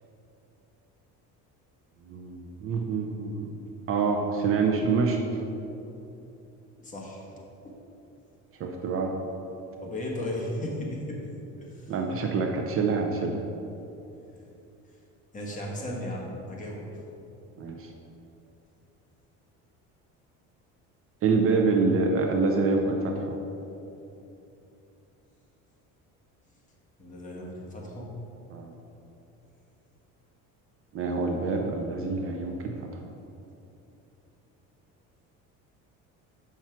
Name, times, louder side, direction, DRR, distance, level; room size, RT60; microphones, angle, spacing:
voice 1, 2.1-3.6 3.9-5.2 8.6-9.1 11.9-13.4 17.6-17.9 21.2-23.3 28.5-28.7 30.9-32.7, right 4 dB, 40° right, 2 dB, 0.6 m, -26 dB
voice 2, 6.8-7.3 7.6-7.8 9.8-11.2 11.6-11.9 15.3-16.8 27.0-28.1, left 1 dB, 25° left, -3 dB, 1.5 m, -35 dB
7.2 x 5.9 x 4.5 m, 2.9 s
cardioid pair, 140°, 32 cm